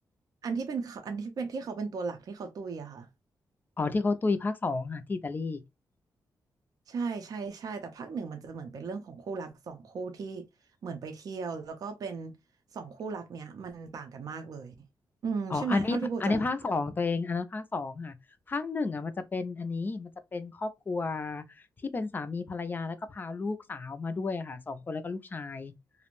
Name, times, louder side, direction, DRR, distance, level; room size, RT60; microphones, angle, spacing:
voice 1, 0.4-3.1 6.9-10.5 10.8-12.4 12.7-14.9 15.2-16.4, right 5 dB, 55° right, 0.4 m, -36 dB
voice 2, 3.8-5.6 15.5-18.1 18.5-21.4 21.8-25.7, left 3 dB, 25° left, 0.3 m, -32 dB
2.5 x 2.0 x 2.9 m
wide cardioid pair, 150°, 8 cm